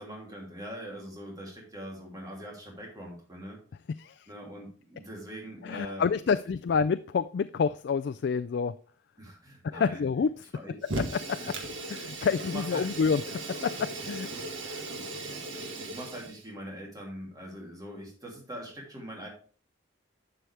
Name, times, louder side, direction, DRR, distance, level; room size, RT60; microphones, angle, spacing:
voice 1, 0.0-3.6 4.3-6.4 9.2-10.0 10.5-10.8 11.4-11.6 12.4-13.1 14.3-14.6 15.7-19.3, equal, 20° right, -2 dB, 2.9 m, -42 dB
voice 2, 3.9-4.3 5.6-8.8 9.7-10.4 11.1-11.4 11.9-14.3, left 5 dB, 55° left, 12 dB, 0.3 m, -28 dB
Fire, 10.8-16.4, right 2 dB, 65° right, 1.7 m, -37 dB
11.5 x 6.3 x 3.4 m, 0.41 s
head